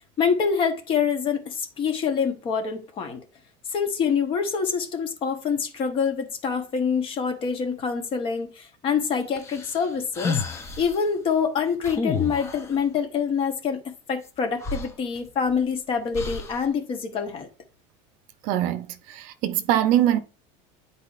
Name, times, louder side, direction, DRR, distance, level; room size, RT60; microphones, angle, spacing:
voice 1, 0.2-3.2 3.7-10.4 10.8-17.5, left 6 dB, 30° left, 1.0 m, -26 dB
sound 1, 9.4-11.0 11.8-12.8 14.3-14.4 14.6-15.6 16.1-16.7, left 4 dB, 15° left, 0.6 m, -31 dB
voice 2, 18.4-20.2, right 12 dB, 50° right, 0.6 m, -23 dB
10.0 x 4.1 x 2.4 m
cardioid pair, 165°, 17 cm